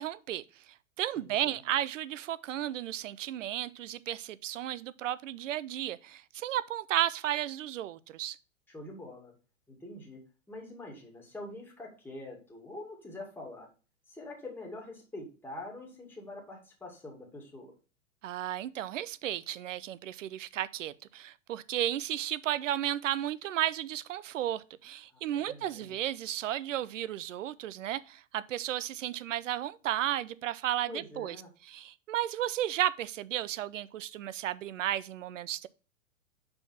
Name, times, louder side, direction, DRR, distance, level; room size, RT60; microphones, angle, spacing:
voice 1, 0.0-8.4 18.2-31.4 31.7-35.7, right 12 dB, 70° right, 0.6 m, -34 dB
voice 2, 1.2-1.6 8.7-9.3 9.7-10.2 10.5-13.7 14.1-17.7 25.1-26.0 30.9-31.5, left 2 dB, 5° left, 2.2 m, -45 dB
5.1 x 4.8 x 5.8 m
hypercardioid pair, 115°, 40 cm